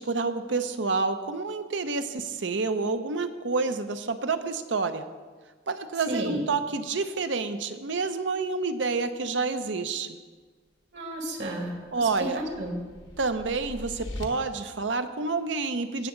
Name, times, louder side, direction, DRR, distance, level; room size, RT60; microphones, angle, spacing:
voice 1, 0.0-5.0 5.7-10.2 11.9-12.4 13.2-16.1, right 4 dB, 85° right, 9 dB, 0.7 m, -28 dB
voice 2, 6.1-6.4 10.9-12.8, right 1 dB, 70° right, 1 dB, 2.2 m, -33 dB
sound 1, 11.6-14.2, left 1 dB, 80° left, 1.1 m, -42 dB
17.0 x 7.1 x 3.8 m, 1.4 s
head